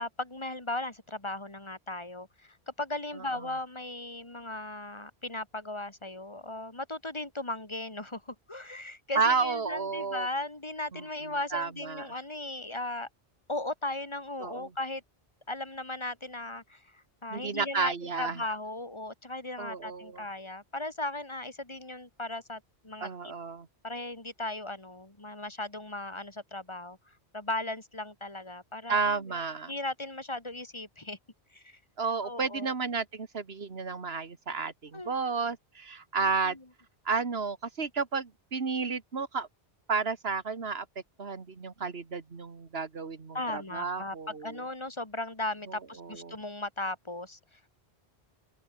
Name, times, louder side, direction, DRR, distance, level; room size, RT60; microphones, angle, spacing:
voice 1, 0.0-13.1 13.5-15.0 15.5-23.3 23.8-29.4 29.7-31.2 31.5-31.8 32.2-32.7 34.9-35.1 36.2-36.6 43.3-47.7, left 2 dB, 25° left, 2.3 m, -37 dB
voice 2, 9.2-10.3 10.9-12.1 14.4-14.7 17.3-18.4 19.6-20.2 23.0-23.7 28.9-29.7 32.0-36.6 37.1-39.5 39.9-40.9 41.2-44.6 45.7-46.4, right 5 dB, 65° right, 2.0 m, -32 dB
open air
omnidirectional pair, 1.1 m